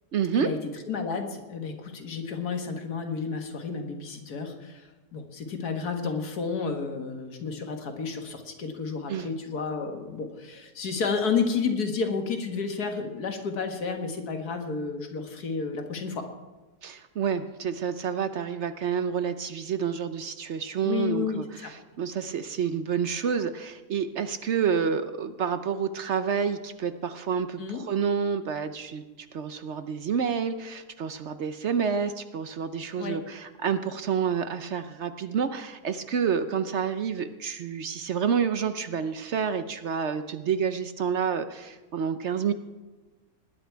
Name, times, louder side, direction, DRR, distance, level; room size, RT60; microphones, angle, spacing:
voice 1, 0.1-0.5 9.1-9.3 16.8-42.5, right 7 dB, 60° right, 10 dB, 0.8 m, -29 dB
voice 2, 0.9-16.3 20.8-21.4 27.6-27.8 33.0-33.2, left 5 dB, 90° left, 5 dB, 2.0 m, -31 dB
19.0 x 10.5 x 4.6 m, 1.2 s
omnidirectional pair, 1.6 m